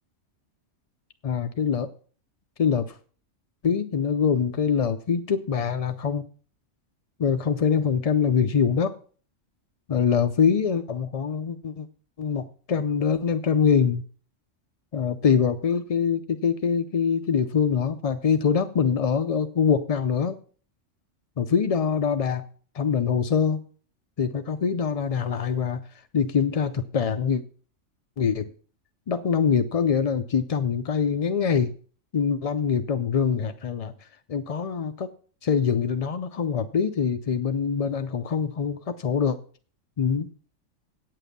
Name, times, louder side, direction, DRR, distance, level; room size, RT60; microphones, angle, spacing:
voice 1, 1.2-1.9 2.6-3.0 3.6-6.3 7.2-9.0 9.9-11.9 12.2-14.0 14.9-20.4 21.4-22.5 22.7-23.6 24.2-25.8 26.1-27.4 28.2-28.5 29.1-31.7 32.1-35.1 35.4-39.4 40.0-40.3, left 6 dB, 55° left, 9 dB, 0.4 m, -24 dB
9.1 x 7.6 x 6.7 m, 0.43 s
omnidirectional pair, 1.3 m